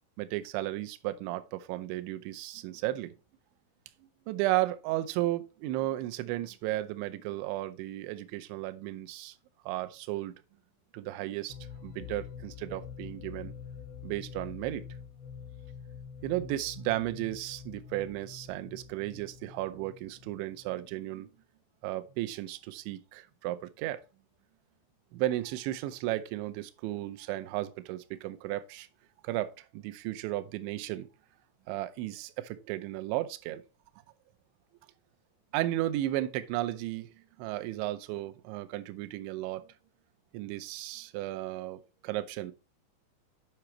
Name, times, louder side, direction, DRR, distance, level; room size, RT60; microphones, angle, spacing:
voice 1, 0.2-3.1 4.3-9.4 9.7-10.3 10.9-11.6 11.8-13.5 14.0-14.8 16.2-21.3 21.8-24.0 25.1-28.9 29.2-31.1 31.7-33.6 35.5-37.1 37.4-39.6 40.3-42.5, right 15 dB, 85° right, 3.0 m, -34 dB
sound 1, 11.5-21.1, left 7 dB, 80° left, 2.5 m, -46 dB
9.0 x 5.9 x 3.1 m
omnidirectional pair, 5.3 m